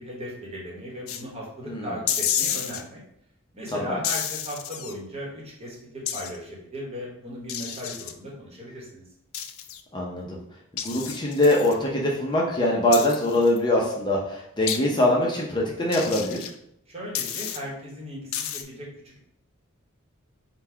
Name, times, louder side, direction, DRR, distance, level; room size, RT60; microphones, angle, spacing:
voice 1, 0.0-3.0 3.5-9.0 16.9-19.2, equal, 30° right, -3 dB, 1.1 m, -37 dB
sound 1, 1.1-1.2 2.1-2.8 4.0-4.9 6.1-6.4 7.5-8.1 9.3-9.8 10.8-11.7 12.9-13.6 14.7-14.8 15.9-16.5 17.1-17.6 18.3-18.6, left 9 dB, 70° left, 0.4 m, -30 dB
voice 2, 9.9-10.4 10.8-16.5, left 1 dB, 20° left, -3 dB, 0.6 m, -23 dB
3.9 x 2.2 x 4.5 m, 0.74 s
head